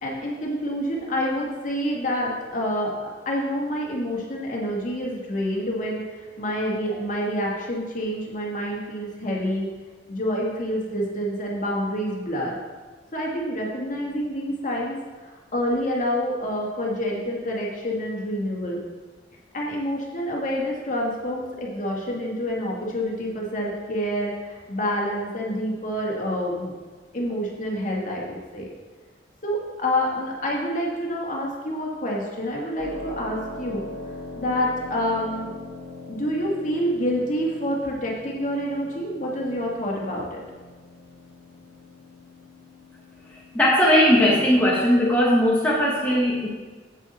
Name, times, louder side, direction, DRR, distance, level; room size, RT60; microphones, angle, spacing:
voice 1, 0.0-9.6 10.1-12.5 13.1-18.8 19.5-26.7 27.1-28.7 29.4-33.9 34.4-35.5 36.1-40.4, equal, 45° left, -2 dB, 1.9 m, -27 dB
Keyboard (musical), 32.8-45.3, left 2 dB, 40° right, 1.4 m, -42 dB
voice 2, 43.5-46.5, equal, 10° left, -5 dB, 1.2 m, -18 dB
8.3 x 8.3 x 4.2 m, 1.4 s
head